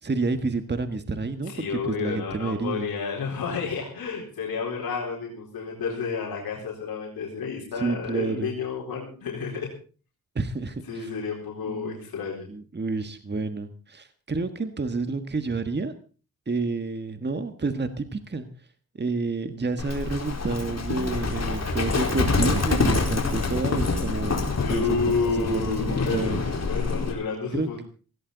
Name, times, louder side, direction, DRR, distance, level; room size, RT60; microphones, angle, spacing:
voice 1, 0.0-2.9 7.8-8.5 10.3-11.1 11.7-12.0 12.5-15.9 16.5-18.5 19.0-25.0 25.2-26.4 27.5-27.8, right 3 dB, 30° right, 9 dB, 1.6 m, -29 dB
voice 2, 1.4-9.7 10.9-12.5 24.5-27.8, left 5 dB, 90° left, -2 dB, 4.2 m, -30 dB
Livestock farm animals working animals, 19.8-27.1, left 3 dB, 45° left, 4.4 m, -26 dB
17.0 x 16.5 x 4.0 m, 0.38 s
cardioid pair, 75°, 35 cm